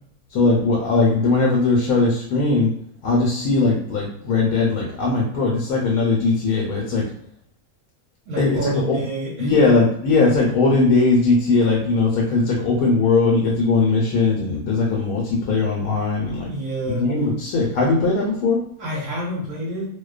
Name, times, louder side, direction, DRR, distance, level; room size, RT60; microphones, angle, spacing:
voice 1, 0.3-2.7 3.0-7.0 8.3-9.0 9.4-16.5 16.9-18.6, left 3 dB, 85° left, -2 dB, 1.1 m, -19 dB
voice 2, 8.3-9.6 16.4-17.0 18.8-19.9, right 1 dB, 80° right, -4 dB, 1.1 m, -28 dB
2.5 x 2.1 x 2.3 m, 0.71 s
omnidirectional pair, 1.5 m